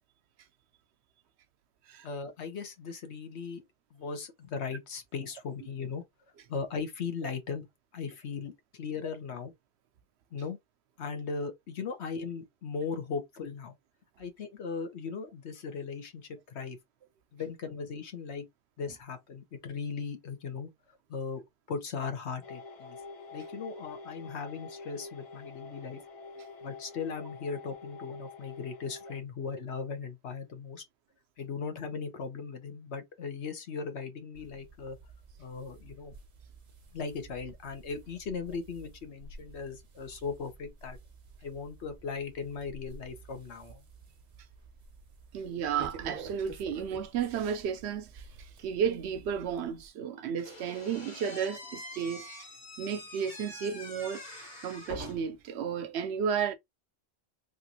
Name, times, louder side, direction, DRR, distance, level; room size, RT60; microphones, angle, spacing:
voice 1, 2.0-3.6 3.9-6.0 6.5-7.7 7.9-9.5 10.3-10.6 11.0-13.7 14.2-16.8 17.3-18.5 18.8-20.7 21.1-21.4 21.7-23.0 23.3-26.0 26.6-30.8 31.4-35.0 35.4-36.1 36.9-41.0 41.4-43.8, left 5 dB, 85° left, 1.2 m, -38 dB
sound 1, 22.4-29.2, left 4 dB, 40° left, 0.5 m, -46 dB
sound 2, 34.3-49.9, right 4 dB, 45° right, 0.7 m, -50 dB
voice 2, 45.3-48.2 48.6-52.5 52.8-54.2 54.6-56.5, right 7 dB, 80° right, 0.9 m, -33 dB
Slam / Squeak, 50.4-55.4, left 1 dB, 60° left, 1.7 m, -45 dB
3.3 x 2.5 x 2.7 m
omnidirectional pair, 1.1 m